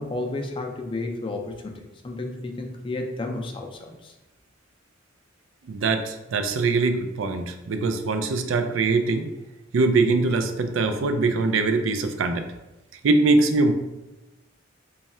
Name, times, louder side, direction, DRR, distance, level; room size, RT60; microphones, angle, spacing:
voice 1, 0.0-4.1, left 2 dB, 25° left, 2 dB, 0.4 m, -32 dB
voice 2, 5.6-9.3 9.7-12.4 13.0-13.7, right 3 dB, 85° right, 7 dB, 0.4 m, -22 dB
3.2 x 2.3 x 4.2 m, 1.0 s
head